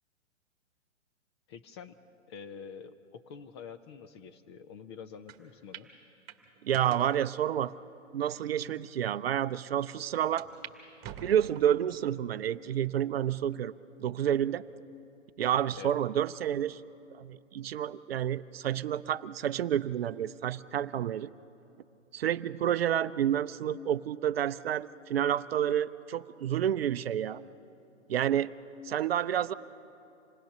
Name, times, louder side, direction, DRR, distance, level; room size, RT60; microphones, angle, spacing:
voice 1, 1.5-2.0 2.3-5.9 15.8-15.9, left 6 dB, 20° left, 9 dB, 0.5 m, -46 dB
sound 1, 5.3-5.4 5.7-5.9 6.3-7.1 7.8-7.9 8.6-8.7 9.0-9.1 10.4-10.8 11.0-11.8 12.3-12.8 13.3-13.4 14.6-15.0, right 8 dB, 25° right, 1.7 m, -46 dB
voice 2, 6.6-7.7 8.1-10.5 11.2-13.7 14.0-14.6 15.4-16.8 17.1-21.3 22.1-27.4 28.1-28.5 28.8-29.5, right 10 dB, 50° right, 14 dB, 0.6 m, -29 dB
27.0 x 19.5 x 6.6 m, 2.7 s
figure-of-eight pair, 125°, 38 cm